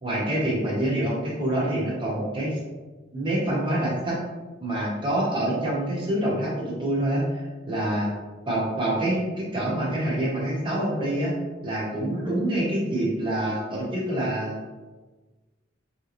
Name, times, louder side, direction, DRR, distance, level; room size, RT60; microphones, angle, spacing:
voice 1, 0.0-2.6 3.1-4.2 4.6-8.1 8.5-11.3 11.6-14.6, right 1 dB, 25° right, -5 dB, 1.0 m, -26 dB
3.7 x 2.9 x 2.5 m, 1.3 s
head